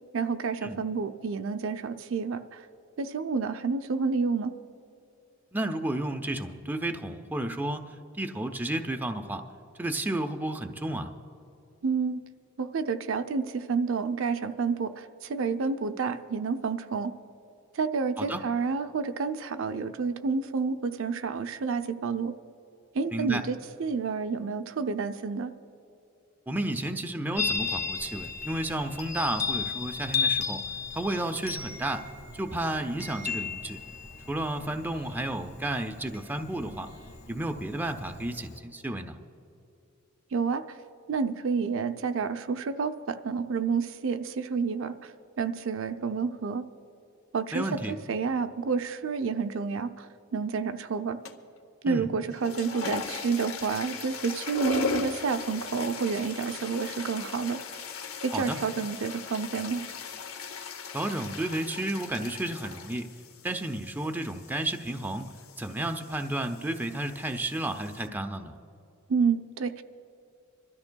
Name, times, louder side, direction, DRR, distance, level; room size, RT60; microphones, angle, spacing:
voice 1, 0.1-2.6 3.0-4.5 11.8-12.2 12.6-17.1 17.8-22.3 22.9-25.5 40.3-40.6 41.1-44.9 45.4-46.6 47.3-51.2 51.8-57.6 58.2-59.8 69.1-69.8, right 5 dB, 65° right, 8 dB, 0.5 m, -29 dB
voice 2, 5.5-9.4 9.8-11.1 18.2-18.4 23.1-23.4 26.5-30.6 30.9-32.0 32.3-33.8 34.3-36.9 37.3-39.2 47.5-47.9 51.8-52.1 58.3-58.6 60.9-63.1 63.4-65.3 65.6-68.5, right 1 dB, 10° right, 5 dB, 0.5 m, -32 dB
Chime, 27.4-38.6, left 5 dB, 50° left, 1.2 m, -35 dB
sound 1, 51.3-51.6 52.3-68.1, left 5 dB, 75° left, 0.8 m, -38 dB
27.0 x 13.0 x 2.2 m, 2.7 s
head